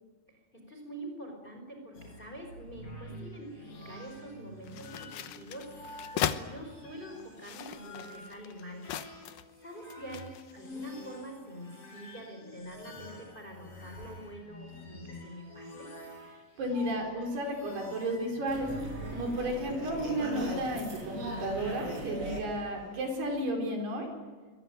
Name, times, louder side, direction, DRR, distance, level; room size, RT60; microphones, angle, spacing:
voice 1, 0.3-10.3 10.5-15.9, right 1 dB, 10° left, 3 dB, 4.7 m, -46 dB
sound 1, 1.9-19.4, equal, 35° left, 6.2 m, -47 dB
sound 2, 4.6-6.4 7.2-9.6 9.9-10.6, left 11 dB, 75° left, 1.9 m, -37 dB
voice 2, 16.6-18.7 19.1-24.1, right 1 dB, 65° right, 2 dB, 6.7 m, -33 dB
sound 3, 18.5-23.6, right 2 dB, 35° right, 6.1 m, -39 dB
25.0 x 21.5 x 9.2 m, 1.4 s
omnidirectional pair, 5.0 m